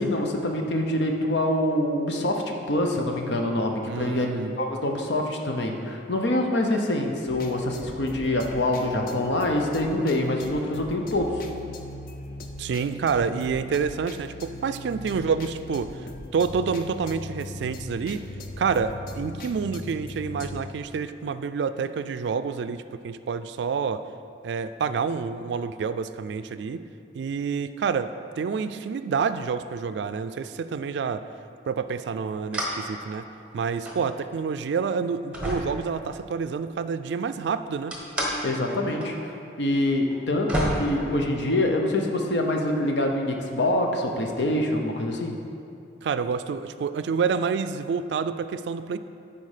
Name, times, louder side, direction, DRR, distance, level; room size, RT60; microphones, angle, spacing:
voice 1, 0.0-4.3 4.6-11.4 38.4-40.5 40.8-45.4, left 1 dB, 80° left, 2 dB, 0.8 m, -25 dB
voice 2, 3.8-4.6 12.6-18.3 18.6-24.0 24.4-26.8 27.1-31.3 31.7-33.3 33.5-38.0 46.0-49.0, right 5 dB, 75° right, 11 dB, 0.3 m, -28 dB
sound 1, 7.3-20.7, left 2 dB, 50° left, 0.5 m, -40 dB
sound 2, 32.5-32.8 33.1-34.0 34.6-34.7 35.3-36.4 37.9-38.4 38.7-39.1 39.3-39.4 40.1-40.2 40.5-41.7, equal, 5° right, 1.1 m, -30 dB
9.6 x 4.2 x 5.0 m, 2.6 s
head